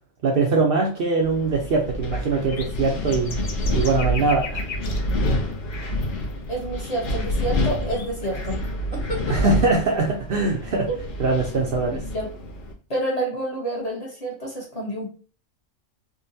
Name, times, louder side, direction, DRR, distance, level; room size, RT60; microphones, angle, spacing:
voice 1, 0.2-3.4 3.7-4.6 9.3-10.9 11.2-12.0, right 3 dB, 60° right, 0 dB, 0.6 m, -22 dB
Wind, 1.2-12.7, left 1 dB, 55° left, 0.7 m, -28 dB
sound 1, 2.5-5.3 5.7-6.1 6.3-6.4 7.0-7.1 7.6-8.7, left 5 dB, 70° left, 0.3 m, -37 dB
voice 2, 6.5-8.6 8.9-9.4 10.9-11.0 11.8-12.3 12.9-15.1, right 1 dB, 35° left, -4 dB, 0.9 m, -29 dB
3.7 x 2.1 x 2.6 m, 0.37 s
omnidirectional pair, 1.3 m